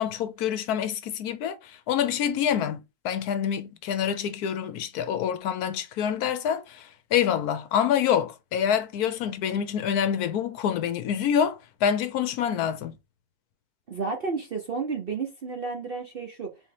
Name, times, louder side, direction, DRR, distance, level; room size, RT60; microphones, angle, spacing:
voice 1, 0.0-12.9, left 9 dB, 75° left, 1.1 m, -26 dB
voice 2, 13.9-16.6, right 4 dB, 55° right, 0.7 m, -32 dB
4.0 x 2.8 x 4.6 m
omnidirectional pair, 1.8 m